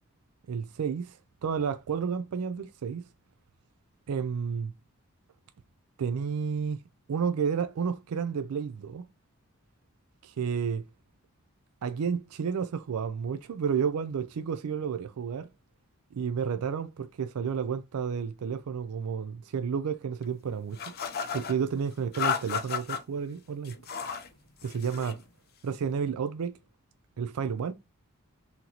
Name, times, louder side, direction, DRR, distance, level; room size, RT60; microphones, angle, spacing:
voice 1, 0.5-1.2 1.4-3.1 4.1-4.7 6.0-6.8 7.1-9.1 10.2-10.8 11.8-15.5 16.1-20.8 21.3-23.8 24.6-25.2 25.6-26.6 27.2-27.7, right 6 dB, 90° right, 0.4 m, -31 dB
sound 1, 20.8-21.6 22.1-23.0 23.6-24.3 24.6-25.2, left 7 dB, 45° left, 0.6 m, -33 dB
3.8 x 2.9 x 2.9 m
head